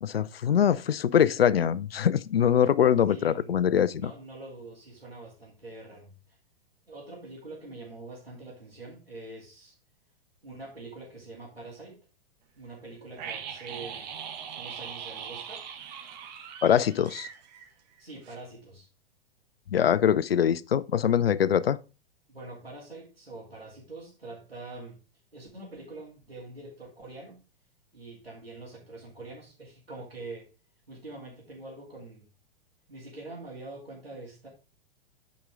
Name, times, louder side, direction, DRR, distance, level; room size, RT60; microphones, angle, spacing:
voice 1, 0.0-4.1 16.6-17.3 19.7-21.8, left 9 dB, 80° left, 0.5 m, -23 dB
voice 2, 3.1-3.6 3.9-6.4 6.9-9.7 10.4-12.0 12.6-14.1 14.5-15.6 18.0-18.9 22.3-25.0 25.3-27.4 27.9-30.5 30.9-32.3 32.9-34.5, right 2 dB, 90° right, 2.9 m, -44 dB
sound 1, 13.2-18.0 18.2-18.4, right 7 dB, 45° right, 1.3 m, -40 dB
8.7 x 5.1 x 3.6 m
figure-of-eight pair, 105°, 29 cm